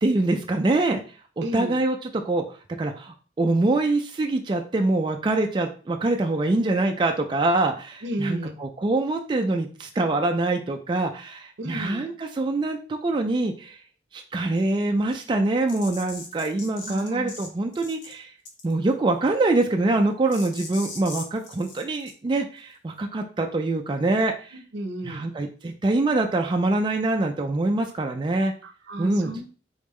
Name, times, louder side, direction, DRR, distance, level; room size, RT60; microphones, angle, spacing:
voice 1, 0.0-1.0 1.4-2.4 2.8-13.8 14.1-18.3 18.6-24.6 25.0-28.5 29.0-29.3, right 2 dB, 25° right, 3 dB, 0.3 m, -24 dB
voice 2, 1.4-1.8 8.0-8.6 11.6-12.1 16.8-17.3 24.7-25.2 28.6-29.5, right 1 dB, 75° right, 7 dB, 0.6 m, -32 dB
sound 1, 15.7-17.5 17.7-18.1 18.5-18.8 20.3-22.1, left 3 dB, 90° left, 1.0 m, -39 dB
3.9 x 3.5 x 3.1 m, 0.38 s
head